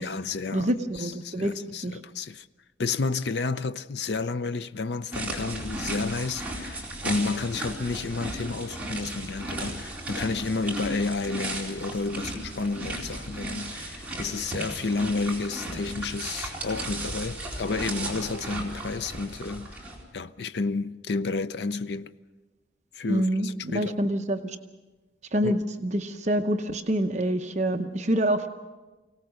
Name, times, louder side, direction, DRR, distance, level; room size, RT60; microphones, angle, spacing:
voice 1, 0.0-2.5 2.8-19.8 20.1-22.1 22.9-23.9 25.4-25.6, left 3 dB, 70° left, 0.6 m, -31 dB
voice 2, 0.5-1.5 1.8-1.9 23.1-24.6 25.3-28.5, right 1 dB, 40° right, 0.9 m, -26 dB
sound 1, 5.1-20.0, right 1 dB, 10° right, 4.2 m, -35 dB
24.5 x 18.0 x 6.4 m
head